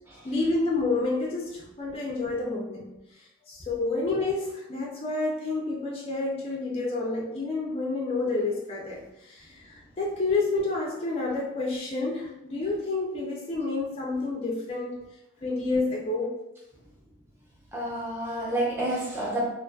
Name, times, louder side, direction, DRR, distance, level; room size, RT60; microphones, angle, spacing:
voice 1, 0.2-15.0 15.4-16.4, left 3 dB, 25° left, -3 dB, 0.3 m, -29 dB
voice 2, 17.7-19.4, right 1 dB, 10° right, -6 dB, 0.6 m, -29 dB
2.5 x 2.4 x 2.3 m, 0.89 s
head